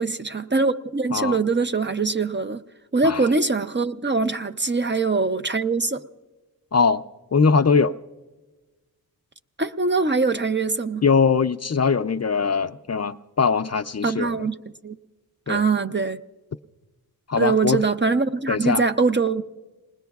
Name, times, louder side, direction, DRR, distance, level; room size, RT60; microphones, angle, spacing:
voice 1, 0.0-2.6 2.9-6.0 9.6-11.0 14.0-14.6 14.8-15.0 15.5-16.2 17.4-19.4, right 4 dB, 30° right, 0.5 m, -23 dB
voice 2, 6.7-7.0 7.3-7.9 11.0-14.3 15.5-15.6 17.3-17.8 18.5-18.8, left 5 dB, 45° left, 0.4 m, -21 dB
28.5 x 20.5 x 2.3 m
wide cardioid pair, 70°, 37 cm